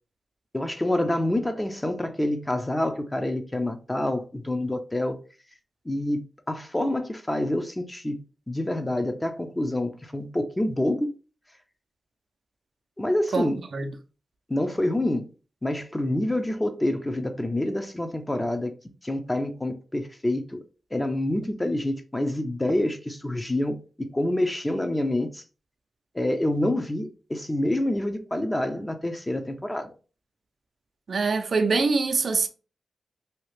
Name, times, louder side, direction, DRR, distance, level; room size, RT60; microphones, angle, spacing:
voice 1, 0.5-5.2 5.9-8.2 8.5-11.1 13.0-13.6 14.5-15.3 15.6-18.7 19.0-20.6 20.9-25.4 26.1-29.9, left 1 dB, 20° left, 0.6 m, -27 dB
voice 2, 13.3-13.9 31.1-32.5, right 4 dB, 65° right, 0.4 m, -24 dB
2.8 x 2.4 x 3.2 m
cardioid pair, 50°, 0 cm